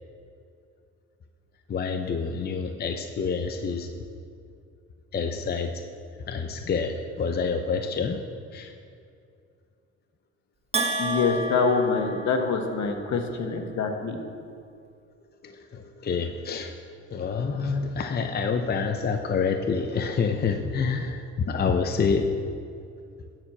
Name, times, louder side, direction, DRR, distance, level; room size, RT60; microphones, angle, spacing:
voice 1, 1.7-3.9 5.1-5.8 6.3-8.3 8.5-8.7 15.4-22.4, left 5 dB, 35° left, 6 dB, 0.6 m, -27 dB
Bell, 10.7-12.9, right 2 dB, 20° right, 1.1 m, -30 dB
voice 2, 11.0-14.2, left 4 dB, 65° left, 4 dB, 1.3 m, -25 dB
11.0 x 4.6 x 7.2 m, 2.4 s
cardioid pair, 90°, 30 cm